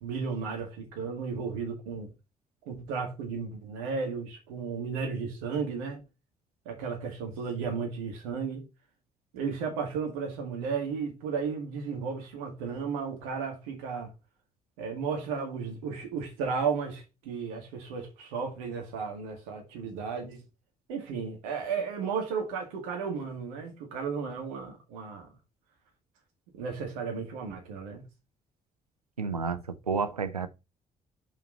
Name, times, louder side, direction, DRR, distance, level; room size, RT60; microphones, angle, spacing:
voice 1, 0.0-2.1 2.7-6.0 6.7-8.6 9.3-14.1 14.8-20.4 20.9-25.3 26.5-28.1, right 5 dB, 70° right, 2.0 m, -34 dB
voice 2, 29.2-30.5, right 5 dB, 85° right, 0.5 m, -30 dB
6.1 x 4.4 x 5.3 m
figure-of-eight pair, 45°, 19 cm